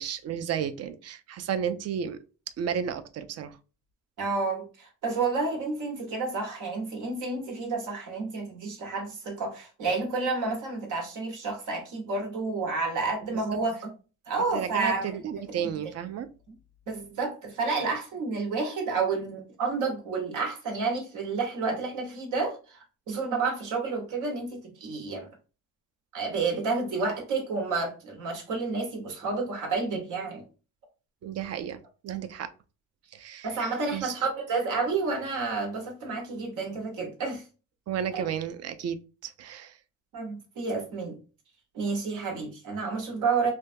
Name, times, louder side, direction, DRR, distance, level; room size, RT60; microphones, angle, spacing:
voice 1, 0.0-2.2 2.6-3.6 13.3-13.4 14.5-16.3 31.2-32.5 33.1-33.6 33.9-34.2 37.9-39.0 39.2-39.8, right 8 dB, 55° right, 0.5 m, -33 dB
voice 2, 4.2-13.9 14.3-15.1 15.6-15.7 16.9-22.8 23.1-25.3 26.1-30.4 33.4-37.4 38.1-38.2 40.1-41.2 41.7-43.5, right 4 dB, 85° right, 1.2 m, -30 dB
3.4 x 2.3 x 2.6 m
cardioid pair, 90°, 30 cm